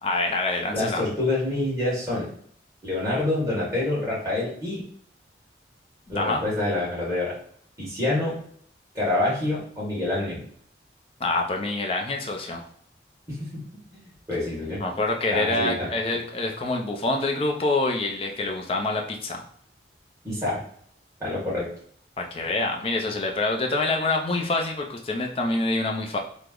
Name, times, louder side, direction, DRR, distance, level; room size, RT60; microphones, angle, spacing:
voice 1, 0.0-1.0 6.2-6.4 11.2-12.6 14.8-19.4 22.2-26.2, left 2 dB, 30° left, 2 dB, 0.4 m, -26 dB
voice 2, 0.7-2.3 2.8-4.8 6.1-7.3 7.8-8.3 8.9-10.4 13.3-13.6 13.9-14.0 14.3-14.8 15.3-15.9 20.2-20.6 21.2-21.7, left 2 dB, 15° right, -7 dB, 1.3 m, -26 dB
3.0 x 2.0 x 3.6 m, 0.62 s
head